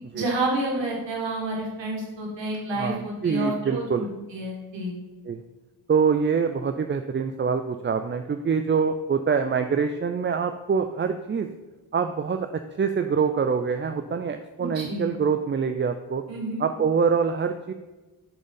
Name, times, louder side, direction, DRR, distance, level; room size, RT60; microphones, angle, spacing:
voice 1, 0.1-4.1 4.3-4.9 14.6-15.1 16.3-16.6, right 1 dB, 90° right, -2 dB, 1.9 m, -29 dB
voice 2, 2.7-4.1 5.3-5.4 5.9-11.5 11.9-16.2 16.6-17.7, right 6 dB, 30° right, 8 dB, 0.4 m, -25 dB
7.0 x 3.9 x 5.5 m, 1.2 s
cardioid pair, 55°, 43 cm